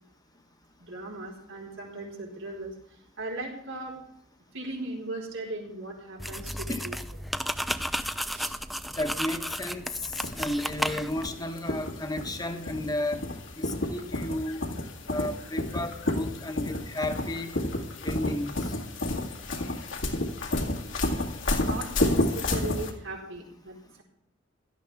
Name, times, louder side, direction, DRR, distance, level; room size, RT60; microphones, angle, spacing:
voice 1, 0.8-2.7 3.2-3.9 4.5-7.0 8.3-8.6 21.6-24.0, right 2 dB, 85° right, -1 dB, 4.6 m, -38 dB
sound 1, 6.2-11.3, equal, ahead, 0.4 m, -33 dB
voice 2, 9.0-13.2 13.6-14.6 15.1-17.5 18.0-18.7, left 1 dB, 20° left, 6 dB, 1.1 m, -33 dB
sound 2, 10.2-22.9, left 1 dB, 85° left, 2.2 m, -30 dB
16.5 x 12.5 x 3.5 m, 0.73 s
head